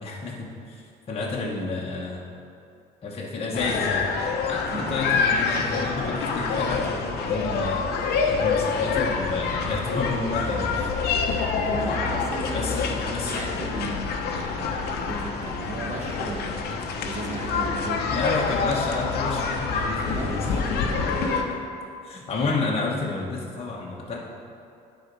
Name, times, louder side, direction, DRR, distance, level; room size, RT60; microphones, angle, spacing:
voice 1, 0.0-0.8 1.1-2.2 3.0-4.1 4.5-10.9 12.5-13.4 18.1-20.5 22.0-24.2, left 3 dB, 35° left, -3 dB, 1.1 m, -30 dB
sound 1, 3.5-21.4, left 5 dB, 70° left, 0.9 m, -26 dB
voice 2, 11.6-18.0 20.1-21.5, right 3 dB, 45° right, 0 dB, 1.2 m, -36 dB
9.8 x 4.2 x 5.4 m, 2.5 s
cardioid pair, 110°, 17 cm